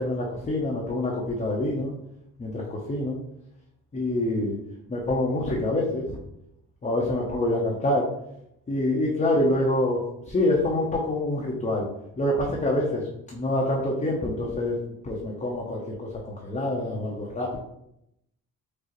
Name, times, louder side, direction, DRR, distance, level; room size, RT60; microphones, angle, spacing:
voice 1, 0.0-1.9 2.4-3.2 3.9-4.6 4.9-6.2 6.8-8.1 8.7-11.9 12.2-14.8 15.0-17.6, left 1 dB, 25° left, -2 dB, 0.7 m, -26 dB
4.7 x 2.1 x 2.9 m, 0.80 s
cardioid pair, 90°, 30 cm